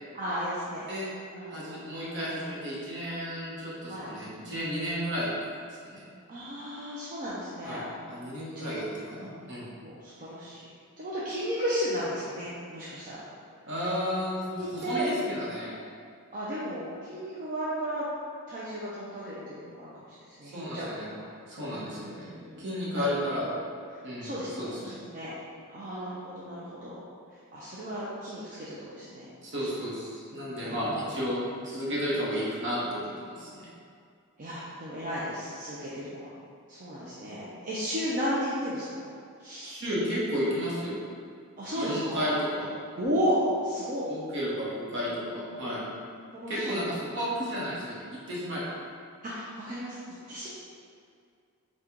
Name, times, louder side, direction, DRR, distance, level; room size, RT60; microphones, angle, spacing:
voice 1, 0.1-0.9 1.3-1.9 3.9-4.1 6.3-7.8 8.6-8.7 9.8-10.7 11.0-13.2 14.5-15.1 16.3-18.1 18.5-20.9 21.6-22.7 22.9-23.2 23.4-23.5 24.2-24.7 25.1-25.3 25.7-27.0 27.5-29.3 29.6-29.7 30.6-31.3 34.4-36.2 36.7-38.8 39.4-39.8 41.6-42.3 43.0-44.1 45.1-46.9 49.2-50.0 50.3-50.5, equal, 40° right, -8 dB, 0.5 m, -34 dB
voice 2, 1.5-5.3 5.7-6.0 7.6-9.7 13.7-15.7 20.4-21.1 21.5-22.3 22.6-23.5 24.0-24.3 24.6-25.0 29.4-31.4 31.6-33.6 39.6-41.0 41.7-42.7 44.0-45.8 46.5-48.6, equal, 55° right, -7 dB, 1.1 m, -33 dB
4.4 x 2.4 x 3.7 m, 2.3 s
head